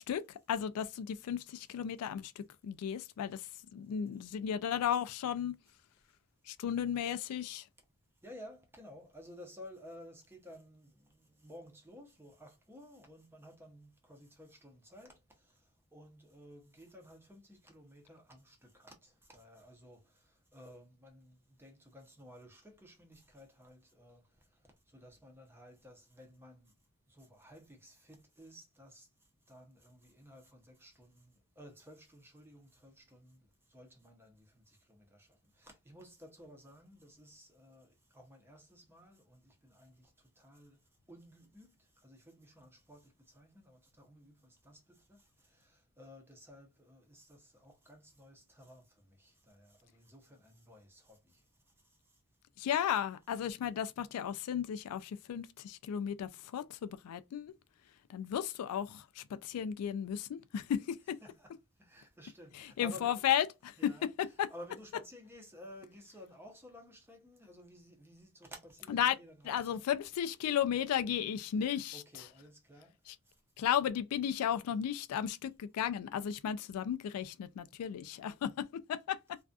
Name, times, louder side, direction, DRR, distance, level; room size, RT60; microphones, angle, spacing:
voice 1, 0.0-5.6 6.5-7.7 52.6-57.5 58.1-61.2 62.5-64.5 68.9-69.2 69.4-72.3 73.1-73.2 73.6-79.4, left 9 dB, 80° left, 0.3 m, -34 dB
voice 2, 8.2-24.5 24.9-26.7 27.1-29.1 29.5-40.8 41.1-51.4 52.1-52.2 61.2-61.5 61.8-63.1 63.8-64.1 64.5-69.7 71.6-72.9, left 1 dB, 10° right, 0.6 m, -55 dB
2.5 x 2.3 x 2.2 m
head